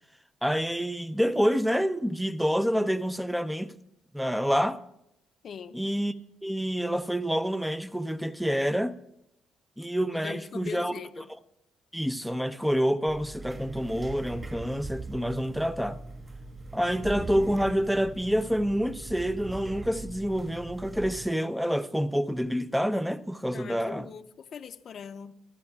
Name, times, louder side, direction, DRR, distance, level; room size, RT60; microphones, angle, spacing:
voice 1, 0.4-3.7 4.1-4.8 5.7-6.1 6.4-9.0 9.8-10.9 11.9-16.0 16.7-24.1, equal, ahead, 0.6 m, -27 dB
voice 2, 5.4-5.8 10.1-11.3 23.5-25.3, left 6 dB, 55° left, 0.6 m, -41 dB
sound 1, 13.1-21.3, right 2 dB, 30° right, 4.4 m, -41 dB
24.0 x 14.0 x 2.4 m
cardioid pair, 90°, 0 cm